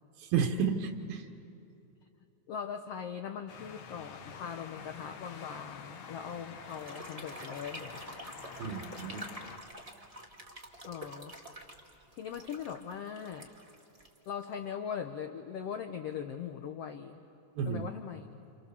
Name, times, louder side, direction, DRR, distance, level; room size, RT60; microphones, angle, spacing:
voice 1, 0.2-1.3 8.6-9.3 17.6-17.9, right 6 dB, 75° right, 4 dB, 3.1 m, -31 dB
voice 2, 2.5-8.0 10.8-11.3 12.1-13.5 14.3-17.2 17.6-18.5, left 7 dB, 85° left, 6 dB, 1.4 m, -40 dB
sound 1, 3.5-9.6, left 6 dB, 65° left, 2.6 m, -48 dB
sound 2, 6.6-14.6, right 1 dB, 20° right, 1.1 m, -48 dB
29.5 x 28.5 x 7.0 m, 2.9 s
omnidirectional pair, 4.2 m